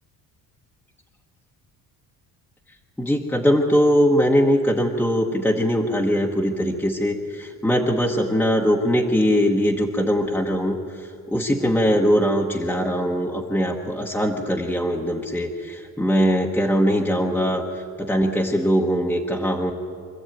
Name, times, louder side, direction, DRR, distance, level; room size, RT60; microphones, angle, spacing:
voice 1, 3.0-19.7, equal, 5° left, -1 dB, 1.3 m, -21 dB
25.5 x 14.0 x 9.2 m, 2.6 s
cardioid pair, 150°, 36 cm